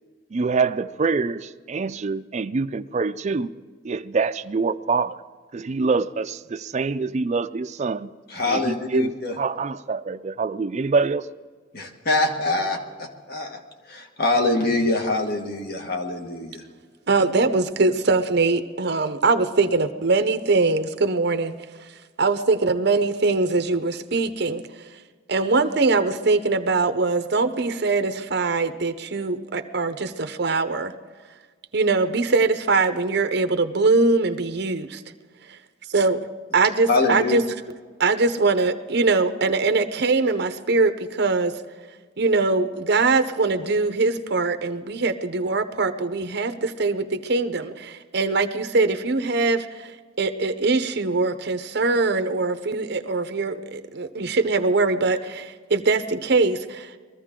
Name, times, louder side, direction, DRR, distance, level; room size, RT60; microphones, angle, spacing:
voice 1, 0.3-3.5 3.8-5.2 5.5-8.1 8.5-11.3, right 4 dB, 40° right, 0.4 m, -25 dB
voice 2, 8.3-9.3 11.7-13.6 13.9-16.6 36.9-37.4, left 2 dB, 55° left, 1.5 m, -24 dB
voice 3, 17.1-21.5 22.2-24.9 25.3-30.9 31.7-35.0 35.5-35.6 35.9-37.4 38.0-41.5 42.2-57.0, right 3 dB, 60° right, 0.8 m, -22 dB
22.0 x 14.0 x 3.7 m
head